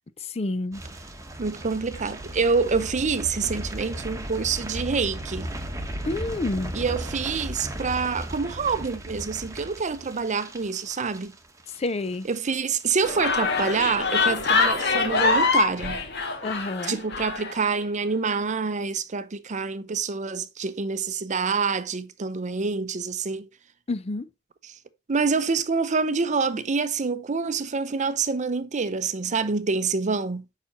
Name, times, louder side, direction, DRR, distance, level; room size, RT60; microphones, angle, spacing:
voice 1, 0.2-0.8 6.0-6.7 11.8-12.3 16.4-17.0 23.9-24.3, left 2 dB, 30° left, 0.5 m, -29 dB
sound 1, 0.7-11.9 12.1-12.5 12.8-12.9, right 1 dB, 15° right, 1.1 m, -36 dB
voice 2, 1.4-5.5 6.7-11.3 12.2-16.0 16.8-23.5 24.6-24.7 25.1-30.4, right 4 dB, 40° right, 0.6 m, -26 dB
sound 2, 13.0-17.5, left 4 dB, 55° left, 1.6 m, -24 dB
7.0 x 5.9 x 2.7 m
head